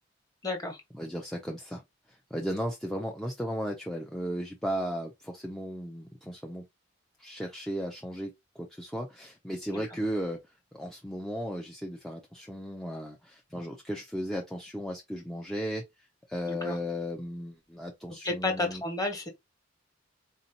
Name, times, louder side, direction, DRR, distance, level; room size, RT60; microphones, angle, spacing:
voice 1, 0.4-0.8 9.7-9.8 16.5-16.8 18.2-19.3, left 2 dB, 20° left, 1.2 m, -31 dB
voice 2, 0.9-1.8 2.1-6.6 7.2-10.4 10.7-15.8 16.3-18.8, equal, ahead, 0.5 m, -35 dB
4.3 x 2.7 x 2.7 m
head